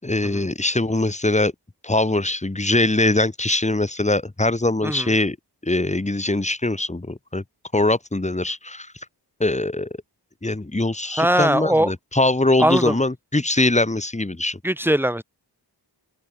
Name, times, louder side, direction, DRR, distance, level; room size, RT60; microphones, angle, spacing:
voice 1, 0.0-1.5 1.8-5.4 5.6-7.4 7.7-8.9 9.4-9.9 10.4-14.6, left 2 dB, 15° left, 4.3 m, -22 dB
voice 2, 11.2-11.9 12.6-13.0 14.6-15.2, right 1 dB, 5° right, 5.9 m, -20 dB
open air
wide cardioid pair, 150°, 42 cm